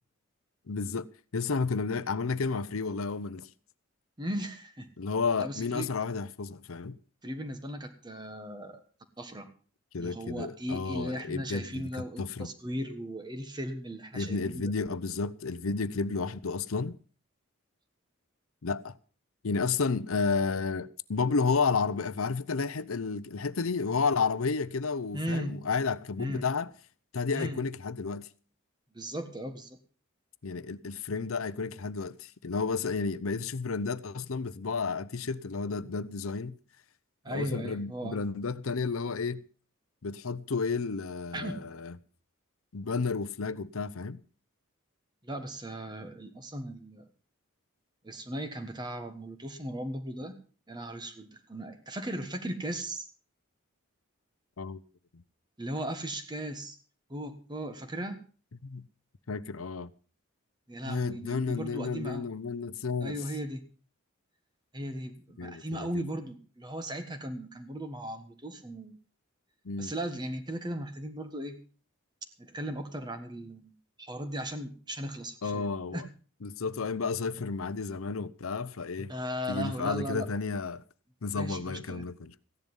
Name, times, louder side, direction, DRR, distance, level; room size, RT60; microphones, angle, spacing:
voice 1, 0.7-3.5 5.0-7.0 9.9-12.5 14.1-17.0 18.6-19.0 19.4-26.7 27.1-28.3 30.4-36.6 37.3-39.4 40.0-42.0 42.7-44.2 54.6-54.8 55.1-55.2 58.6-58.9 59.3-59.9 60.8-63.2 65.4-66.0 69.6-69.9 75.4-76.1 76.4-79.1 79.5-80.8 81.2-82.3, left 4 dB, 85° left, 0.7 m, -32 dB
voice 2, 4.2-4.9 5.4-5.9 7.2-8.8 9.2-9.5 10.0-14.7 25.1-25.5 26.2-26.4 27.3-27.6 28.9-29.8 37.2-38.2 41.3-41.6 45.2-47.0 48.0-50.4 50.7-53.1 55.6-56.8 57.1-58.2 60.7-62.3 63.0-63.6 64.7-69.0 69.8-71.6 72.4-73.7 74.0-76.0 79.1-80.2 81.3-82.0, right 1 dB, 20° right, 1.4 m, -37 dB
15.0 x 10.5 x 5.4 m
head